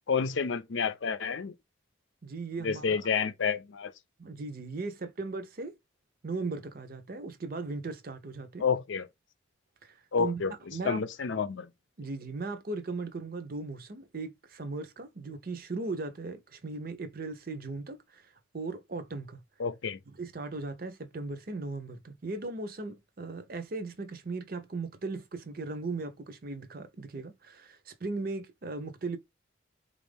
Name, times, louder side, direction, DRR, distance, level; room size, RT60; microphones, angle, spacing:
voice 1, 0.1-1.5 2.6-3.9 8.6-9.1 10.1-10.5 10.8-11.7 19.6-20.0, left 6 dB, 85° left, 0.5 m, -29 dB
voice 2, 2.2-3.0 4.2-5.8 6.2-8.7 9.8-10.4 10.7-11.0 12.0-19.4 20.1-29.2, right 3 dB, 50° right, 0.7 m, -38 dB
4.2 x 2.5 x 3.3 m
head